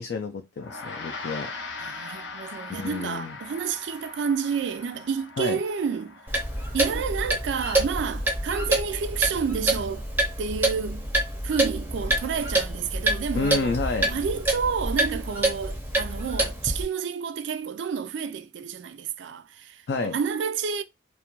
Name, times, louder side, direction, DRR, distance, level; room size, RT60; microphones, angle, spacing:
voice 1, 0.0-1.5 2.7-3.4 5.4-5.6 13.3-14.1 19.9-20.2, left 3 dB, 60° left, 0.3 m, -29 dB
Gong, 0.6-10.2, left 3 dB, 85° left, 0.7 m, -42 dB
voice 2, 1.8-6.2 6.7-10.0 10.4-11.1 11.4-13.8 14.1-20.8, right 6 dB, 70° right, 0.3 m, -30 dB
Clock, 6.3-16.8, right 1 dB, 10° right, 0.5 m, -27 dB
2.4 x 2.1 x 2.9 m
head